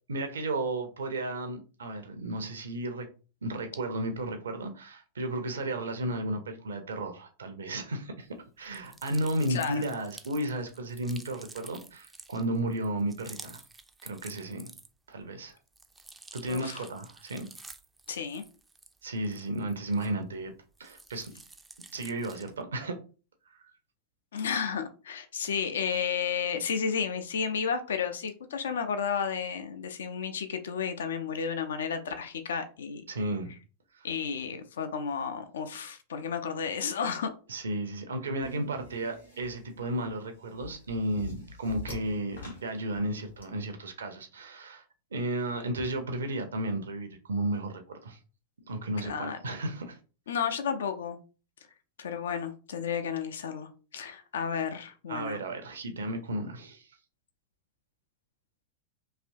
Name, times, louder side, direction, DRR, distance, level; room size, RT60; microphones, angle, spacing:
voice 1, 0.1-3.1 3.4-8.3 8.6-13.6 14.0-14.7 15.1-15.5 16.3-17.5 19.0-20.5 20.8-21.3 21.9-23.0 23.5-23.7 33.1-33.5 33.9-34.1 37.5-44.8 45.1-48.2 48.7-50.0 55.1-56.9, right 1 dB, 65° right, 6 dB, 0.5 m, -33 dB
sound 1, 8.7-15.1 15.5-20.4 20.7-22.6, right 3 dB, 10° right, 0.3 m, -50 dB
voice 2, 9.5-9.8 16.5-16.8 18.1-18.4 24.3-33.0 34.0-37.3 49.0-49.4 50.3-51.2 52.0-55.4, left 6 dB, 65° left, 8 dB, 0.4 m, -32 dB
sound 2, 38.4-43.4, left 3 dB, 80° left, 1.3 m, -44 dB
3.2 x 2.8 x 2.6 m, 0.36 s
figure-of-eight pair, 90°, 0 cm